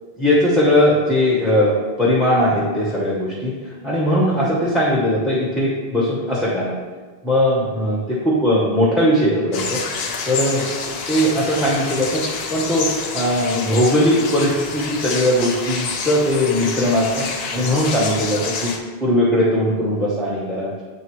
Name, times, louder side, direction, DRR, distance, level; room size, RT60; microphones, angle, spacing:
voice 1, 0.2-6.7 7.2-9.8 10.2-12.2 12.5-12.9 13.1-18.7 19.0-20.7, left 1 dB, ahead, -6 dB, 0.8 m, -19 dB
sound 1, 9.5-18.8, left 4 dB, 75° left, 0.9 m, -28 dB
9.2 x 3.4 x 3.1 m, 1.4 s
omnidirectional pair, 1.1 m